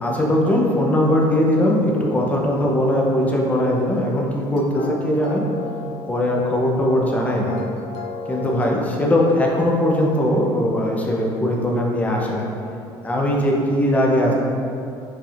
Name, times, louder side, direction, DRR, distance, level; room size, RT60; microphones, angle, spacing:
voice 1, 0.0-5.4 6.1-7.6 8.3-12.5 13.0-14.3, left 1 dB, 15° left, -2 dB, 0.5 m, -20 dB
sound 1, 4.3-9.7, left 3 dB, 80° left, 0.5 m, -35 dB
4.7 x 3.4 x 2.4 m, 2.7 s
cardioid pair, 130°, 10 cm